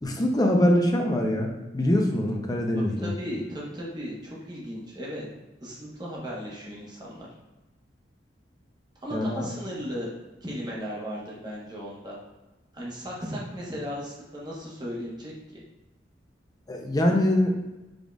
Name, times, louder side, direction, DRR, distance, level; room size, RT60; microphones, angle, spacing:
voice 1, 0.0-3.1 9.1-9.5 16.7-17.6, left 1 dB, 20° left, 2 dB, 0.5 m, -23 dB
voice 2, 2.7-5.3 5.6-7.3 9.0-10.1 10.4-12.2 12.7-15.3, equal, 25° right, -5 dB, 1.1 m, -36 dB
5.1 x 3.8 x 2.4 m, 1.0 s
head